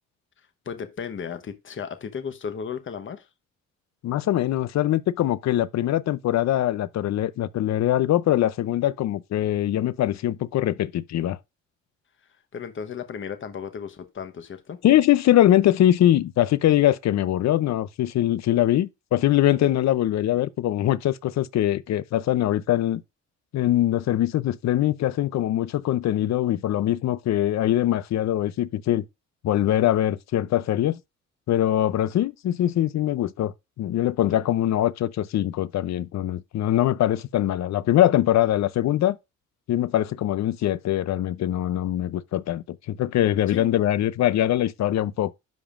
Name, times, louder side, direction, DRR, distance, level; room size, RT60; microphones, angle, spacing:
voice 1, 0.6-3.3 12.5-14.8 43.5-43.7, left 7 dB, 40° left, 1.0 m, -35 dB
voice 2, 4.0-11.4 14.8-23.0 23.5-29.0 29.4-31.0 31.5-39.2 39.7-45.3, left 12 dB, 65° left, 0.6 m, -22 dB
10.5 x 5.1 x 2.5 m
cardioid pair, 90°, 30 cm